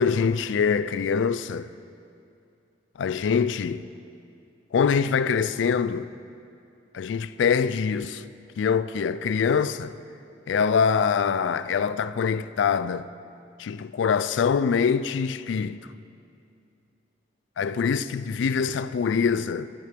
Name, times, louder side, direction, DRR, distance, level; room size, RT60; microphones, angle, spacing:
voice 1, 0.0-1.7 3.0-3.9 4.7-6.1 6.9-8.2 8.6-9.9 10.5-13.1 13.6-15.8 17.6-19.7, left 6 dB, 75° left, 0.3 m, -24 dB
13.0 x 9.5 x 5.1 m
head